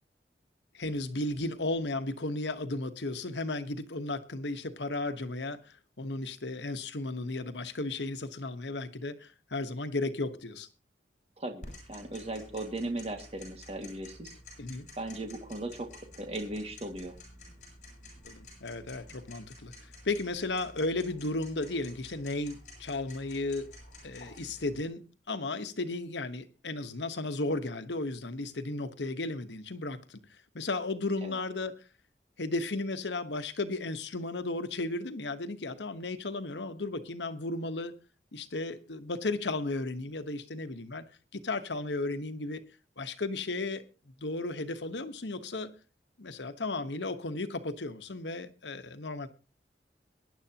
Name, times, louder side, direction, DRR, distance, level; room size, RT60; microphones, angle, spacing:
voice 1, 0.7-10.7 14.6-14.9 18.2-19.7 20.0-23.7 24.0-30.2 30.5-31.7 32.4-38.0 38.3-41.0 41.3-42.6 43.0-43.8 44.2-45.7 46.2-49.3, left 2 dB, 90° left, 1.2 m, -34 dB
Tick-tock, 11.6-24.8, left 1 dB, 45° left, 7.9 m, -51 dB
voice 2, 11.9-14.4 15.0-17.2 31.2-31.4, right 2 dB, 35° right, 2.0 m, -37 dB
22.5 x 10.5 x 2.9 m
head